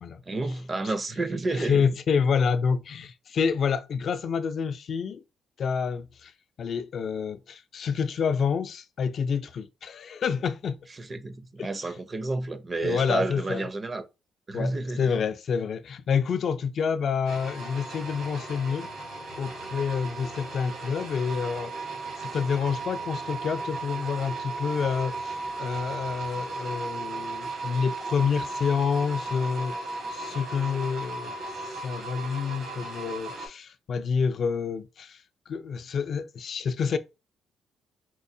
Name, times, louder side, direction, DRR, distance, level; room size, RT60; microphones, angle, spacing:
voice 1, 0.3-1.9 11.0-14.0 14.5-15.1, right 2 dB, 30° right, 0.5 m, -30 dB
voice 2, 1.6-5.2 5.6-6.3 6.6-10.8 11.6-11.7 12.8-13.6 14.5-18.9 19.4-29.8 30.1-31.3 31.7-37.0, left 6 dB, 60° left, 0.4 m, -28 dB
sound 1, 17.3-33.5, right 3 dB, 80° right, 1.6 m, -36 dB
4.4 x 2.0 x 2.6 m
cardioid pair, 90°, 0 cm